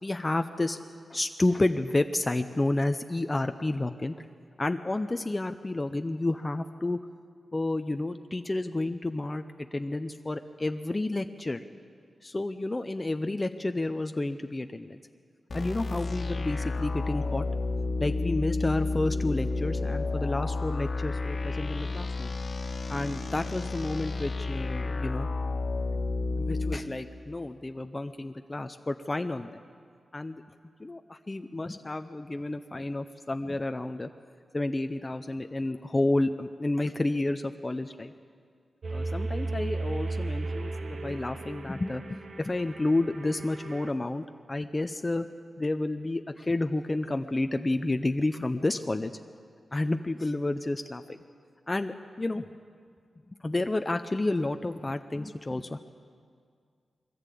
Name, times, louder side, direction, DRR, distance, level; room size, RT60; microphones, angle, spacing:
voice 1, 0.0-0.8 1.1-4.1 4.6-7.0 7.5-9.4 9.7-11.6 12.2-15.0 15.5-17.4 18.0-22.3 22.9-25.3 26.4-29.6 30.1-30.4 30.8-34.1 34.5-38.1 38.9-45.3 45.6-49.1 49.7-51.2 51.7-52.5 53.4-55.8, left 2 dB, 25° left, 7 dB, 0.6 m, -30 dB
sound 1, 15.5-26.8, left 3 dB, 55° left, 1.5 m, -31 dB
sound 2, 38.8-43.9, right 2 dB, 65° right, 1.2 m, -35 dB
21.5 x 14.5 x 8.4 m, 2.1 s
wide cardioid pair, 95°, 0 cm